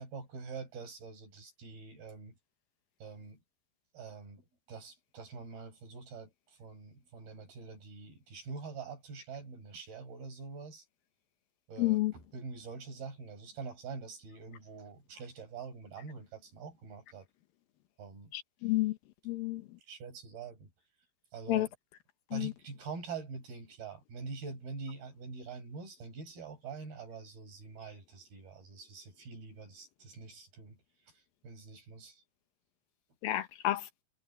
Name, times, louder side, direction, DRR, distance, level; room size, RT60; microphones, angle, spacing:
voice 1, 0.0-2.3 3.0-3.4 3.9-10.9 11.7-17.3 18.0-18.3 19.8-20.7 21.3-21.7 22.3-30.8 31.1-32.2, right 5 dB, 90° right, 8.7 m, -45 dB
voice 2, 11.8-12.1 18.3-19.0 19.3-19.6 21.5-21.7 22.3-22.5 33.2-33.8, left 16 dB, 75° left, 2.9 m, -30 dB
omnidirectional pair, 4.2 m